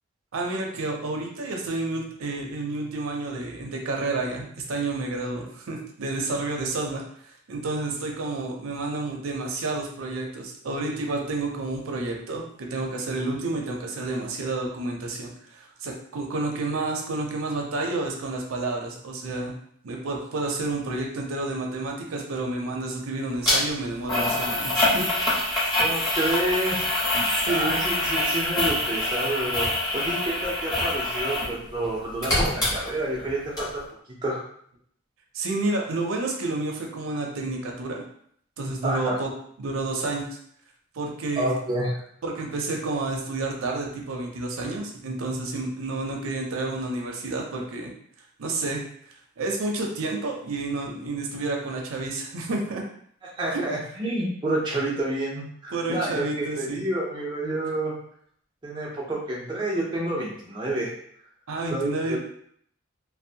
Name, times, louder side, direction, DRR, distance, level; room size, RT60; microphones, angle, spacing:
voice 1, 0.3-19.5 19.8-25.1 25.6-25.8 27.2-27.7 35.3-38.0 38.6-39.3 39.6-40.3 40.9-41.5 42.2-47.9 48.4-48.8 49.4-52.8 53.5-53.6 55.7-56.8 61.5-62.2, right 2 dB, 90° right, 1 dB, 0.5 m, -30 dB
sound 1, 23.4-23.6 24.1-31.5 31.8-33.3 33.6-33.7, left 1 dB, 20° left, 0.8 m, -25 dB
voice 2, 25.8-26.9 27.5-33.7 34.2-34.4 38.8-39.2 41.4-41.9 53.4-57.9 58.6-60.9 61.7-62.2, right 1 dB, 20° right, -4 dB, 0.5 m, -29 dB
2.6 x 2.1 x 2.7 m, 0.65 s
head